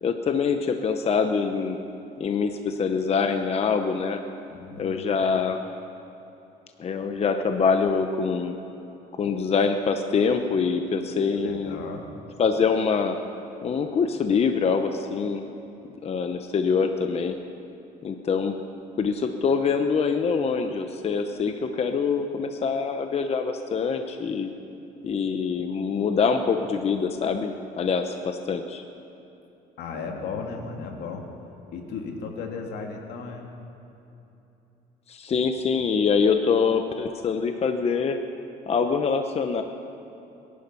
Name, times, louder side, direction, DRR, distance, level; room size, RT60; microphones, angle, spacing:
voice 1, 0.0-1.8 2.2-4.2 4.8-5.6 6.8-8.6 9.2-11.8 12.4-13.2 13.6-15.4 16.0-17.4 18.0-18.6 19.0-24.5 25.0-28.8 35.1-38.2 38.7-39.6, left 5 dB, 40° left, 6 dB, 0.9 m, -24 dB
voice 2, 4.5-5.0 11.1-12.1 29.8-31.2 31.7-33.5, left 5 dB, 80° left, 2 dB, 2.2 m, -35 dB
23.0 x 11.0 x 5.5 m, 2.9 s
cardioid pair, 110°, 17 cm